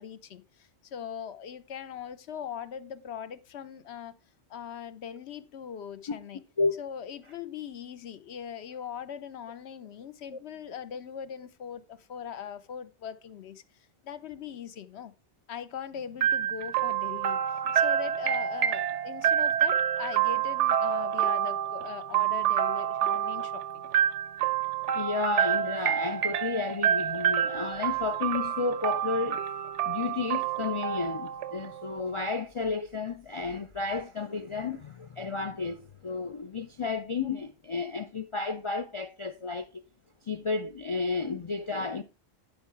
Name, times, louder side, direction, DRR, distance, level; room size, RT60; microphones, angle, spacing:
voice 1, 0.0-4.2 4.5-6.4 6.8-13.6 14.0-15.1 15.5-23.8, left 8 dB, 70° left, 1.0 m, -40 dB
sound 1, 16.2-32.0, right 10 dB, 85° right, 1.0 m, -28 dB
voice 2, 24.9-29.4 29.9-39.7 40.2-42.0, left 4 dB, 50° left, 0.3 m, -32 dB
10.5 x 4.6 x 4.5 m
omnidirectional pair, 1.2 m